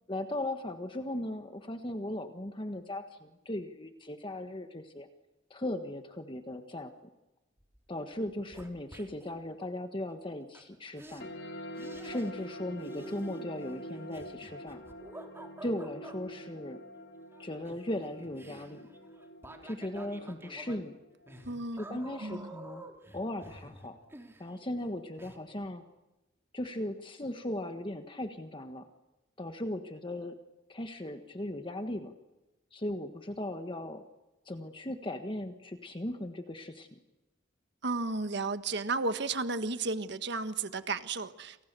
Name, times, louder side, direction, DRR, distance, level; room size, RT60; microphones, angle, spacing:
voice 1, 0.1-5.1 5.5-6.9 7.9-11.3 12.0-14.8 15.6-16.8 17.4-18.8 19.6-21.0 21.8-22.8 23.1-24.0 24.4-25.8 26.5-28.8 29.4-30.3 30.7-32.1 32.7-34.0 34.4-37.0, left 1 dB, 25° left, 6 dB, 1.5 m, -37 dB
sound 1, 7.6-9.4 10.5-10.6 11.0-11.2 11.8-12.6 12.8-16.2 17.3-24.9 25.2-25.4, right 1 dB, 15° right, 3.4 m, -49 dB
sound 2, 11.2-22.2, equal, 65° left, 5.0 m, -46 dB
voice 2, 21.4-22.5 37.8-41.6, right 3 dB, 65° right, 10 dB, 1.5 m, -33 dB
29.5 x 28.5 x 6.9 m, 1.1 s
head